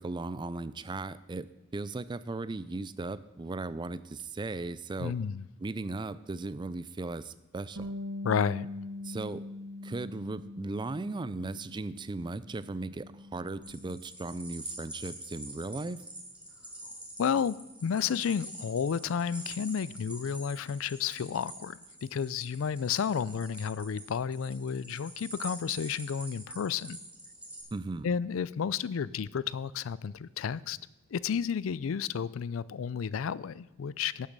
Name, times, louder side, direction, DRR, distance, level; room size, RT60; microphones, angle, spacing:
voice 1, 0.0-1.5 1.7-5.1 5.6-7.9 9.0-9.4 9.8-16.0 27.7-28.1, right 3 dB, 25° right, 16 dB, 0.4 m, -37 dB
voice 2, 5.0-5.5 8.2-8.7 17.2-27.0 28.0-30.8 31.1-34.3, left 7 dB, 80° left, 20 dB, 0.4 m, -32 dB
Bass guitar, 7.8-14.0, left 2 dB, 70° right, 0.8 m, -42 dB
sound 1, 13.6-27.6, right 1 dB, 5° right, 2.2 m, -45 dB
11.0 x 7.1 x 6.6 m, 0.91 s
head